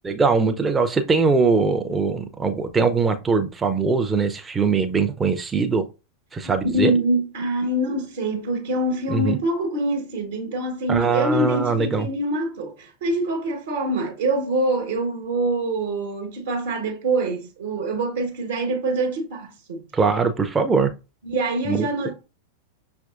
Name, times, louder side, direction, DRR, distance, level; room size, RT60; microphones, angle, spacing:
voice 1, 0.0-5.8 6.3-6.9 9.1-9.4 10.9-12.1 19.9-20.9 21.7-21.9, right 4 dB, 15° right, 0.5 m, -21 dB
voice 2, 6.4-19.8 21.2-22.1, right 1 dB, 60° right, 1.1 m, -25 dB
6.0 x 3.5 x 2.4 m
figure-of-eight pair, 90°, 0 cm